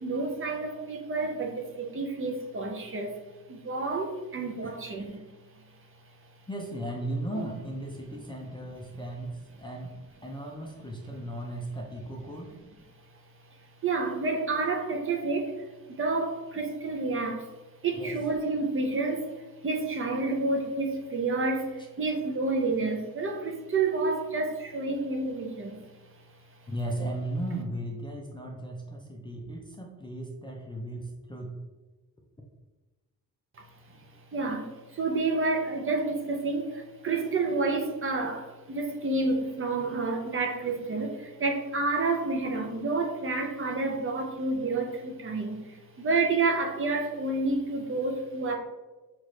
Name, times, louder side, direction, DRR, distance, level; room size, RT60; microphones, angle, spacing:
voice 1, 0.0-3.1 3.5-5.2 13.8-15.6 16.0-17.5 17.8-25.8 34.3-48.5, right 3 dB, 35° right, 2 dB, 0.6 m, -29 dB
voice 2, 4.6-5.2 6.5-10.0 10.2-12.5 18.0-18.2 26.7-31.6, right 1 dB, 15° left, -1 dB, 0.4 m, -36 dB
5.9 x 2.5 x 3.1 m, 1.2 s
wide cardioid pair, 145°, 36 cm